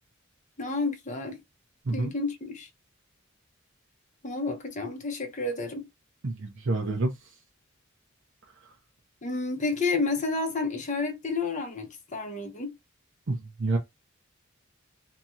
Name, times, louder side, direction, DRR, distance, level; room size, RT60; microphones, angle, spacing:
voice 1, 0.6-1.4 1.9-2.7 4.2-5.9 9.2-12.7, left 3 dB, 35° left, 0.8 m, -30 dB
voice 2, 6.2-7.1 13.3-13.8, right 2 dB, 60° right, 0.7 m, -28 dB
2.8 x 2.8 x 2.4 m
head